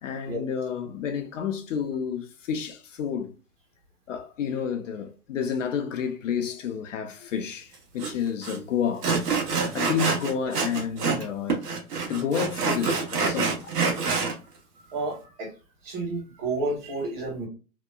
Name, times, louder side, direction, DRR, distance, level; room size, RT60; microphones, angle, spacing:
voice 1, 0.0-3.3 4.1-9.5 9.7-11.7 12.1-13.7, left 7 dB, 55° left, 0.5 m, -30 dB
Sawing, 8.0-8.1 8.4-8.6 9.0-11.2 11.5-14.3, right 4 dB, 80° right, 1.1 m, -26 dB
voice 2, 14.9-15.5 15.8-17.5, right 2 dB, 40° right, 1.4 m, -31 dB
2.8 x 2.1 x 2.2 m
hypercardioid pair, 140°, 47 cm